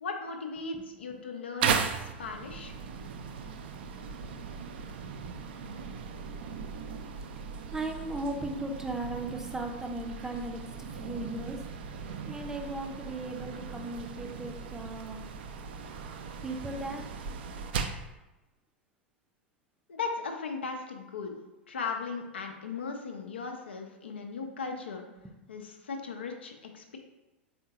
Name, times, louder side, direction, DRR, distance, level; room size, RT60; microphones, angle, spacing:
voice 1, 0.0-2.7 19.9-21.4 21.7-25.1 25.5-27.0, left 4 dB, 75° left, 3 dB, 0.5 m, -37 dB
sound 1, 1.6-18.1, right 6 dB, 60° right, 0.4 m, -37 dB
voice 2, 7.7-11.6 12.3-15.3 16.4-17.1 24.1-24.2 25.2-25.3, right 2 dB, 10° right, 3 dB, 0.6 m, -37 dB
4.2 x 3.6 x 2.8 m, 1.0 s
figure-of-eight pair, 85°, 6 cm